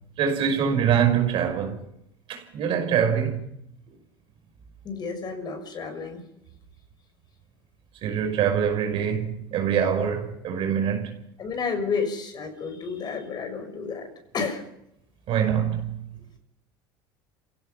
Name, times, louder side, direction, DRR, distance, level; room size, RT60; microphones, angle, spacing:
voice 1, 0.2-1.8 2.3-3.4 8.0-11.1 15.3-16.0, right 8 dB, 55° right, 5.7 m, -24 dB
voice 2, 4.8-6.2 11.4-14.1 14.3-14.6, left 5 dB, 40° left, 6.2 m, -31 dB
28.5 x 16.5 x 5.9 m
supercardioid pair, 90°, 11 cm